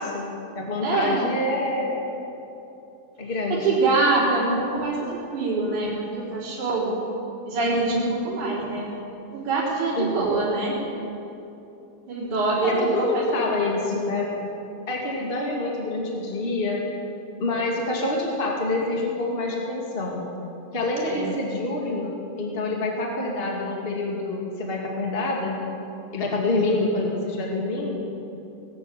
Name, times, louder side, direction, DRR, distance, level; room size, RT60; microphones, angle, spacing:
voice 1, 0.0-2.1 3.2-3.7 10.0-10.3 12.6-14.3 14.9-16.8 17.4-20.2 20.7-25.6 26.1-28.2, left 2 dB, 20° left, -1 dB, 2.4 m, -27 dB
voice 2, 0.8-1.3 3.5-7.0 7.5-8.9 9.3-10.7 12.1-13.9 21.0-21.4, right 3 dB, 85° right, -8 dB, 5.6 m, -24 dB
19.5 x 15.0 x 9.1 m, 2.9 s
omnidirectional pair, 3.4 m